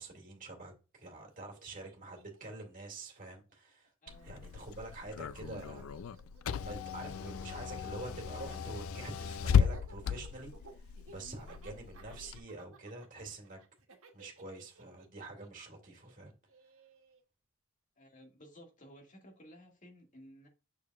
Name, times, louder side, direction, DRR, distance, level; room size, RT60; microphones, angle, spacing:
voice 1, 0.0-3.9 4.2-6.0 6.6-13.6 14.1-16.3, right 2 dB, 40° right, 2.2 m, -47 dB
Laughter, 1.2-1.3 1.5-3.9 4.2-17.2, right 3 dB, 80° right, 1.5 m, -58 dB
voice 2, 4.0-4.5 7.0-7.9 11.2-11.4 18.0-20.5, equal, 40° left, 2.0 m, -56 dB
Car / Engine, 4.1-12.4, left 7 dB, 75° left, 0.4 m, -35 dB
6.9 x 6.6 x 2.4 m
head